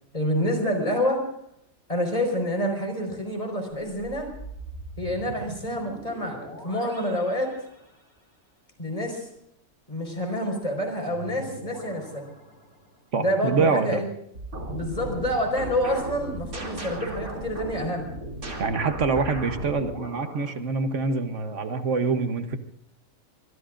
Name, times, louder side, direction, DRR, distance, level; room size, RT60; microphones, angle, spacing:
voice 1, 0.1-1.2 1.9-4.3 5.0-7.5 8.8-9.3 9.9-12.2 13.2-14.1 14.7-18.1, equal, 25° left, 3 dB, 4.9 m, -27 dB
sound 1, 3.7-8.3 11.1-13.2 18.8-20.1, right 2 dB, 80° left, 6.0 m, -42 dB
voice 2, 13.1-14.0 18.6-22.6, right 4 dB, 60° right, 8 dB, 1.4 m, -25 dB
sound 2, 14.4-20.6, right 2 dB, 80° right, 3.3 m, -36 dB
25.5 x 22.5 x 2.6 m, 0.74 s
omnidirectional pair, 1.5 m